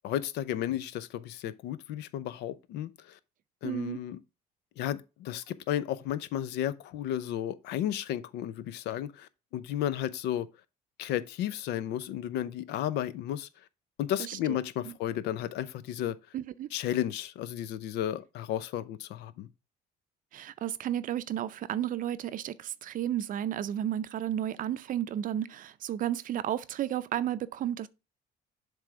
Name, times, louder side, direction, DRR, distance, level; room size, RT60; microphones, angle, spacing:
voice 1, 0.0-3.2 3.6-4.2 4.8-10.5 11.0-13.5 14.0-16.2 16.7-19.5, left 11 dB, 85° left, 0.6 m, -33 dB
voice 2, 3.6-4.0 14.2-14.6 16.3-16.7 20.3-27.9, right 11 dB, 55° right, 0.5 m, -33 dB
7.5 x 3.5 x 4.9 m
cardioid pair, 110°, 17 cm